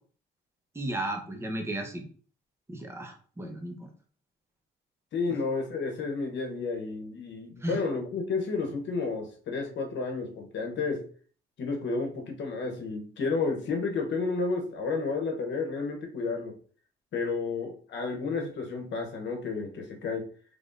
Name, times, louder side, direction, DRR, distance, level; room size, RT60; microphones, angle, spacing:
voice 1, 0.7-2.0 2.7-3.8 7.6-7.8, right 1 dB, 10° right, 3 dB, 0.9 m, -34 dB
voice 2, 5.1-11.0 11.6-16.5 17.1-20.2, left 4 dB, 65° left, 3 dB, 1.0 m, -31 dB
3.6 x 3.4 x 2.6 m, 0.44 s
cardioid pair, 90°, 20 cm